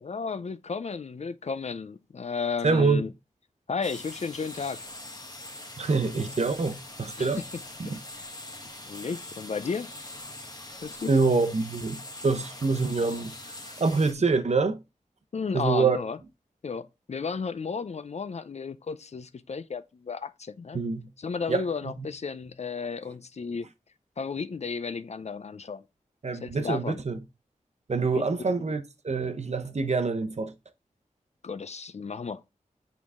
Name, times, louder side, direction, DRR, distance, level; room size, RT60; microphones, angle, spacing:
voice 1, 0.0-3.1 3.7-4.9 7.2-7.4 7.8-8.3 8.9-9.9 10.8-11.1 15.3-16.2 16.6-20.8 21.2-23.7 24.2-25.8 26.4-27.0 28.1-28.2 31.4-32.4, left 5 dB, 55° left, 0.4 m, -33 dB
voice 2, 2.6-3.1 5.8-7.4 7.8-8.0 11.1-14.8 15.5-16.0 20.7-21.1 21.5-21.6 26.2-27.2 27.9-30.5, right 4 dB, 55° right, 0.8 m, -26 dB
sound 1, 3.8-14.1, left 1 dB, 30° left, 1.3 m, -43 dB
7.2 x 4.0 x 3.6 m
wide cardioid pair, 90°, 14 cm